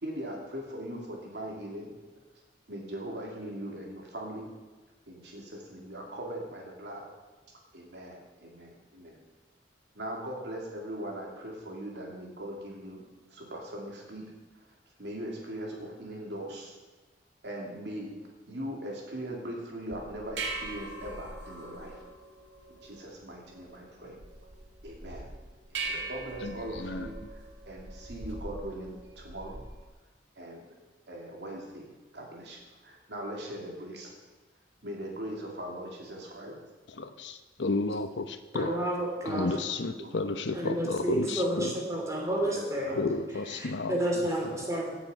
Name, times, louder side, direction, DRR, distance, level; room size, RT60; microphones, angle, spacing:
voice 1, 0.0-2.0 2.7-4.5 5.1-7.1 7.7-9.2 9.9-13.0 13.3-14.3 15.0-16.8 17.4-18.1 18.5-22.0 22.7-24.2 24.8-25.3 25.8-29.6 30.4-30.6 31.1-34.1 34.8-36.6 38.7-40.8 42.3-43.1 43.5-43.7, right 1 dB, 70° right, -1 dB, 2.7 m, -40 dB
sound 1, 19.9-29.9, right 3 dB, 85° right, 2.1 m, -41 dB
voice 2, 26.4-27.1 37.0-38.8 39.2-41.7 42.9-44.0, left 3 dB, 80° left, 9 dB, 0.8 m, -32 dB
voice 3, 38.5-39.6 40.5-42.9 43.5-44.9, right 1 dB, 15° right, -1 dB, 2.9 m, -30 dB
16.5 x 7.0 x 5.4 m, 1.2 s
head